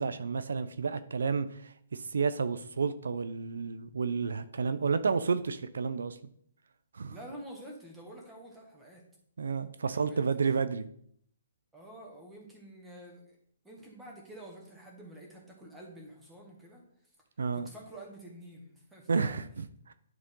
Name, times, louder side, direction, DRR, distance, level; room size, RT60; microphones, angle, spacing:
voice 1, 0.0-6.2 6.9-7.2 9.4-10.9 17.4-17.7 19.1-19.9, right 5 dB, 80° right, 13 dB, 0.5 m, -31 dB
voice 2, 7.1-9.0 9.8-10.3 11.7-13.4 13.6-16.8 17.5-19.4, right 1 dB, 10° right, 0 dB, 1.6 m, -48 dB
11.0 x 3.7 x 3.7 m, 0.67 s
hypercardioid pair, 155°, 0 cm